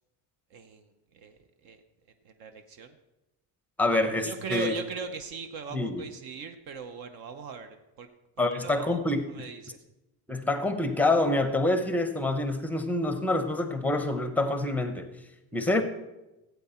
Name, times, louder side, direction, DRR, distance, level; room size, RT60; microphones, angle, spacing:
voice 1, 0.5-1.8 2.2-3.0 4.2-8.1 8.4-9.8, right 5 dB, 60° right, 8 dB, 0.9 m, -39 dB
voice 2, 3.8-4.7 5.7-6.0 8.4-9.3 10.3-15.1 15.5-15.8, left 2 dB, 5° left, 8 dB, 0.6 m, -26 dB
16.0 x 8.3 x 4.3 m, 1.0 s
cardioid pair, 170°, 42 cm